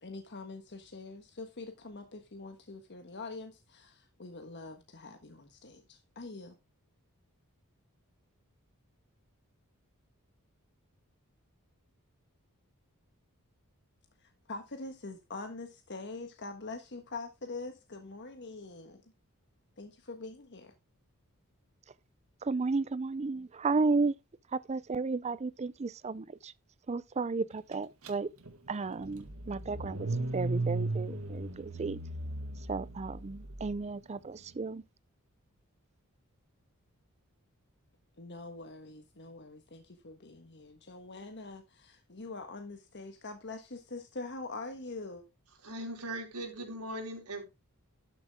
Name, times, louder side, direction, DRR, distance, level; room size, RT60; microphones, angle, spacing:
voice 1, 0.0-6.5 14.2-19.0 19.8-20.7 38.2-45.2, left 3 dB, 50° left, 1.4 m, -44 dB
voice 2, 22.4-24.1 24.7-26.5 26.9-28.3 28.7-30.1 30.3-32.0 32.7-34.8, right 4 dB, 30° right, 0.4 m, -33 dB
Car / Engine starting, 28.0-28.1 28.5-33.7, right 2 dB, 70° right, 1.9 m, -36 dB
voice 3, 45.6-47.4, right 1 dB, 90° right, 4.5 m, -39 dB
12.5 x 7.4 x 3.6 m
head